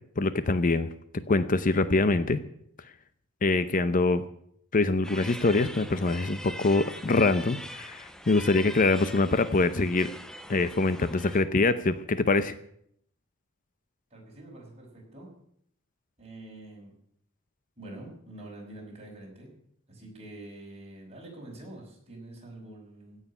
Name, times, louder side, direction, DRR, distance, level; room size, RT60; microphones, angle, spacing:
voice 1, 0.2-2.4 3.4-4.2 4.7-10.1 10.5-12.6, left 3 dB, 40° left, 13 dB, 0.7 m, -24 dB
sound 1, 5.0-11.4, equal, 5° left, 0.9 m, -42 dB
voice 2, 14.1-15.3 16.2-16.9 17.8-19.5 19.9-23.2, right 1 dB, 30° right, -1 dB, 5.7 m, -46 dB
16.5 x 6.6 x 9.8 m, 0.69 s
head